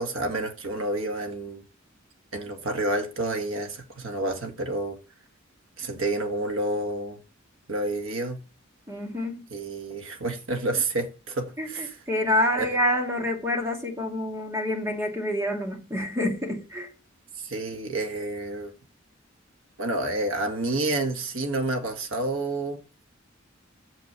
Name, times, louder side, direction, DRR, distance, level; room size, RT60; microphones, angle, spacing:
voice 1, 0.0-1.6 2.3-5.0 5.8-7.2 7.7-8.4 9.5-12.0 12.6-12.8 17.4-18.7 19.8-22.8, right 2 dB, 90° right, 1.8 m, -29 dB
voice 2, 8.9-9.4 11.6-11.7 12.1-16.9, left 1 dB, 15° right, 2.2 m, -27 dB
7.3 x 6.4 x 6.9 m
head